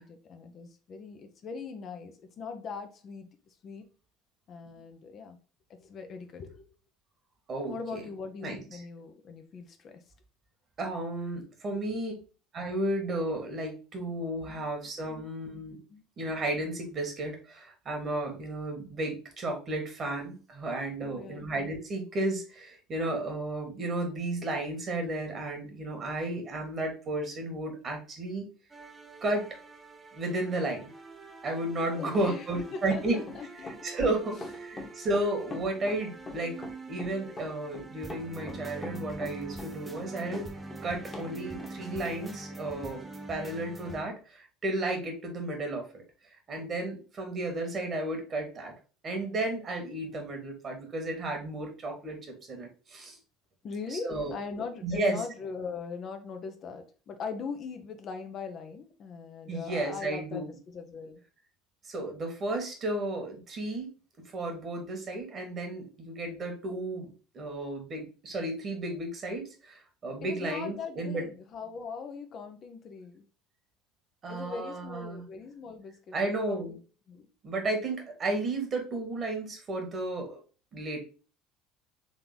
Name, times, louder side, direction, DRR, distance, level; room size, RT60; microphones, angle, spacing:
voice 1, 0.0-3.3 3.6-3.9 4.5-5.4 5.7-6.7 7.7-10.0 11.9-12.0 15.9-16.0 21.0-21.5 31.9-33.8 53.6-61.2 70.2-73.3 74.3-76.8 77.1-77.3, left 5 dB, 45° left, 6 dB, 0.7 m, -41 dB
voice 2, 7.5-8.0 8.4-8.8 10.8-12.1 12.5-15.8 16.2-28.4 29.2-29.4 30.1-30.9 31.4-33.1 33.6-36.5 36.9-40.5 40.8-46.0 46.5-48.7 49.0-52.2 52.5-53.2 53.9-54.3 54.8-55.2 59.5-60.5 61.8-63.9 64.3-67.1 67.3-71.2 74.2-75.2 76.1-76.8 77.4-80.4 80.7-81.1, right 2 dB, 35° right, 3 dB, 1.7 m, -33 dB
sound 1, 28.7-44.0, right 2 dB, 20° right, 0.8 m, -44 dB
Run, 32.1-41.3 41.6-41.7 42.1-42.2, left 2 dB, 25° left, 1.3 m, -43 dB
3.8 x 3.3 x 3.9 m, 0.36 s
figure-of-eight pair, 65°, 0 cm